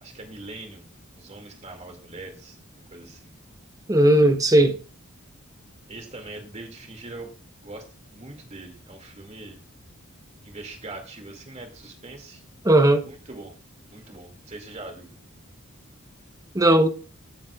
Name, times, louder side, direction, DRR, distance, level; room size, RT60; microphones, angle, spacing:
voice 1, 0.0-0.9 1.1-2.6 2.9-3.3 5.9-9.6 10.4-12.4 13.0-13.5 13.9-15.1, right 2 dB, 30° right, 2.3 m, -42 dB
voice 2, 3.9-4.8 12.6-13.0 16.5-16.9, right 1 dB, 15° right, 0.9 m, -17 dB
16.0 x 7.3 x 2.4 m
head